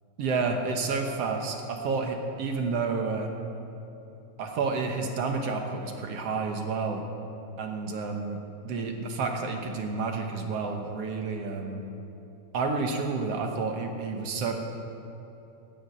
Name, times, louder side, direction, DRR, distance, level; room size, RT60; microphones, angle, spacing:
voice 1, 0.2-3.3 4.4-7.1 7.6-8.4 8.6-11.8 12.5-14.5, right 4 dB, 65° right, 3 dB, 1.9 m, -30 dB
11.5 x 8.6 x 9.1 m, 3.0 s
omnidirectional pair, 3.4 m